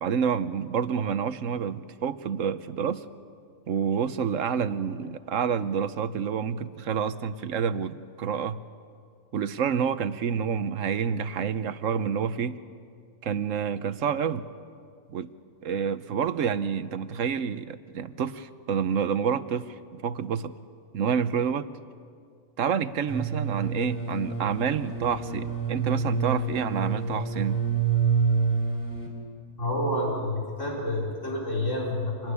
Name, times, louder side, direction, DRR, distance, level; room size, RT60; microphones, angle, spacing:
voice 1, 0.0-3.0 3.7-8.6 9.3-12.6 13.2-14.5 15.1-15.3 15.6-20.5 20.9-21.7 22.6-27.6, right 7 dB, 80° right, 12 dB, 1.2 m, -28 dB
sound 1, 23.1-29.1, right 5 dB, 10° left, 4.5 m, -27 dB
voice 2, 29.6-32.3, left 1 dB, 70° left, -2 dB, 4.8 m, -29 dB
26.5 x 19.5 x 9.7 m, 2.2 s
omnidirectional pair, 1.3 m